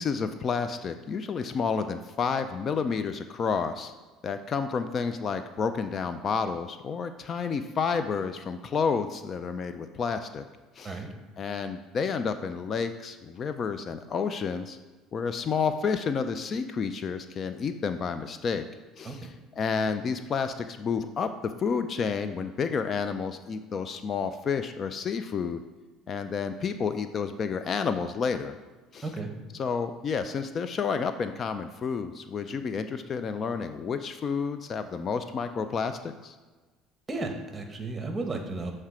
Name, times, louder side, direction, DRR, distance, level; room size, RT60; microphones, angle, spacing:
voice 1, 0.0-3.9 4.2-10.5 10.8-11.0 11.4-14.8 15.1-18.6 19.0-25.6 26.1-28.6 28.9-29.0 29.6-36.4, left 5 dB, 40° left, 9 dB, 0.4 m, -30 dB
voice 2, 37.1-38.7, right 3 dB, 20° right, 4 dB, 1.0 m, -33 dB
7.3 x 3.2 x 4.9 m, 1.3 s
supercardioid pair, 90°, 0 cm